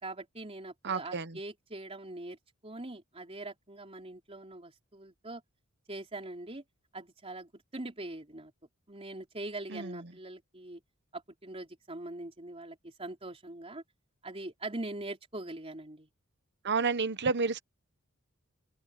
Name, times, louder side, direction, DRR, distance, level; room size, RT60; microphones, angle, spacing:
voice 1, 0.0-5.4 5.9-6.6 6.9-8.5 8.9-10.8 11.1-13.8 14.2-16.1, right 2 dB, 30° right, 4.0 m, -42 dB
voice 2, 0.8-1.4 9.7-10.0 16.6-17.6, right 4 dB, 50° right, 1.0 m, -30 dB
open air
head